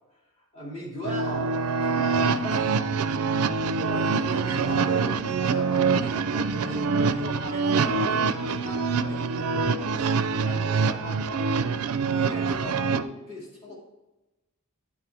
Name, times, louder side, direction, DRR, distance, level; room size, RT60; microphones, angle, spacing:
voice 1, 0.4-2.9 3.8-11.8 12.2-13.7, equal, 30° left, -5 dB, 2.6 m, -39 dB
voice 2, 1.0-3.4 6.6-8.6, equal, 80° left, -3 dB, 2.5 m, -43 dB
sound 1, 1.0-13.0, right 5 dB, 75° right, 0.5 m, -25 dB
9.8 x 4.4 x 4.6 m, 1.0 s
head